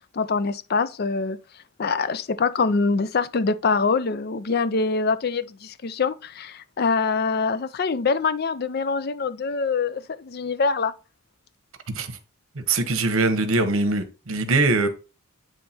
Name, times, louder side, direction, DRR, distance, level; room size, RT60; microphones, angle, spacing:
voice 1, 0.1-1.4 1.8-10.9, left 4 dB, 45° left, 0.4 m, -24 dB
voice 2, 11.9-12.2 12.5-14.9, right 3 dB, 75° right, 1.1 m, -22 dB
9.3 x 3.2 x 4.3 m
head